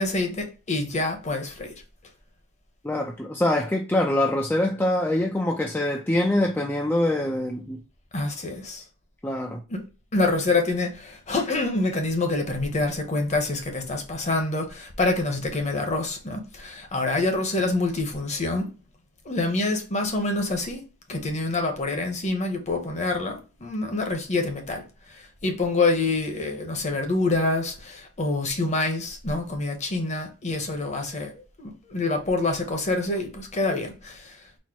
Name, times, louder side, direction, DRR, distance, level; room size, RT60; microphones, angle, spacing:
voice 1, 0.0-1.7 8.1-8.8 9.7-9.8 10.1-18.7 19.2-20.8 21.1-24.8 25.1-34.4, left 2 dB, 35° left, 1.0 m, -26 dB
voice 2, 2.8-7.8 9.2-9.6, left 1 dB, 10° left, 0.4 m, -24 dB
4.3 x 2.0 x 4.4 m
head